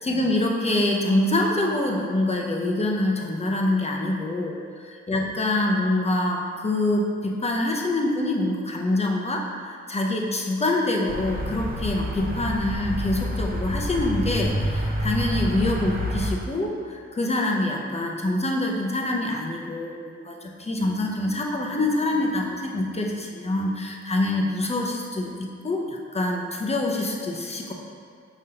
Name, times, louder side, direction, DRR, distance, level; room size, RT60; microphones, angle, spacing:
voice 1, 0.0-27.7, left 1 dB, 20° left, 0 dB, 0.6 m, -25 dB
sound 1, 11.1-16.3, equal, 30° right, 0.8 m, -28 dB
6.8 x 5.1 x 2.8 m, 2.2 s
wide cardioid pair, 135°, 30 cm